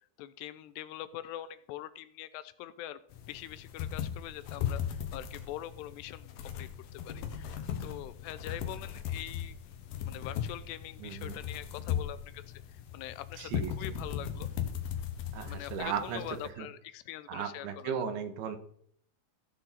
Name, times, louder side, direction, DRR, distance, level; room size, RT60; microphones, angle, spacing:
voice 1, 0.2-3.0 3.3-7.5 7.8-9.6 10.0-12.4 12.9-14.5 15.5-18.0, left 13 dB, 85° left, 14 dB, 2.7 m, -43 dB
sound 1, 3.1-16.5, left 9 dB, 70° left, 2.6 m, -38 dB
voice 2, 11.0-11.4 13.4-13.7 15.3-16.2 16.6-16.7 17.3-18.6, right 7 dB, 75° right, 7 dB, 3.0 m, -36 dB
16.0 x 6.5 x 4.2 m, 0.64 s
omnidirectional pair, 4.9 m